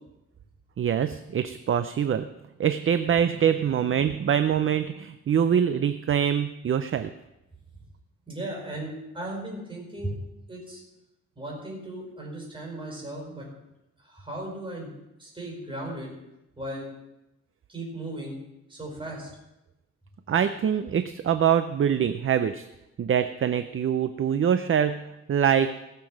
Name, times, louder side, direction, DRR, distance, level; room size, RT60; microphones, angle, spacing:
voice 1, 0.8-2.3 2.6-7.1 20.3-22.7 23.0-25.0 25.3-25.7, right 8 dB, 40° right, 10 dB, 0.5 m, -24 dB
voice 2, 8.3-10.2 10.5-10.8 11.3-13.4 14.0-14.9 15.2-16.1 16.6-16.8 17.7-18.4 18.7-19.3, right 1 dB, 15° right, -2 dB, 4.9 m, -36 dB
18.5 x 6.8 x 6.3 m, 0.93 s
wide cardioid pair, 170°, 32 cm